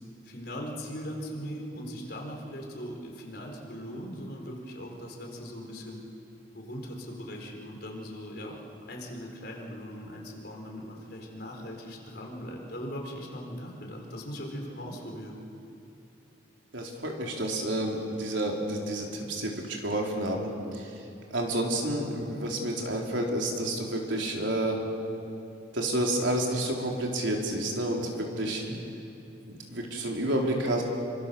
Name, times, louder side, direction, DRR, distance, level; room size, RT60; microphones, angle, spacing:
voice 1, 0.2-6.0 6.5-15.4 28.4-28.8, equal, 55° left, 0 dB, 4.7 m, -40 dB
voice 2, 16.7-20.9 21.3-24.8 25.7-28.6 29.5-30.8, right 1 dB, 80° right, 0 dB, 4.1 m, -30 dB
28.0 x 25.0 x 7.1 m, 2.8 s
head